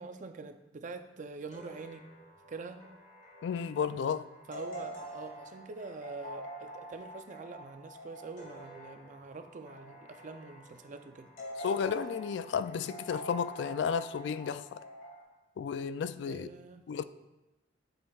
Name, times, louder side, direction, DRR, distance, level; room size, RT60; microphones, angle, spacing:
voice 1, 0.0-2.1 2.5-2.8 4.5-11.3 16.3-16.8, right 4 dB, 40° right, 0.5 m, -45 dB
sound 1, 1.5-15.2, right 1 dB, 45° left, 2.2 m, -47 dB
voice 2, 3.4-4.3 11.6-14.8 15.6-16.5 16.9-17.0, left 6 dB, 65° left, 0.3 m, -33 dB
8.7 x 7.7 x 2.3 m
head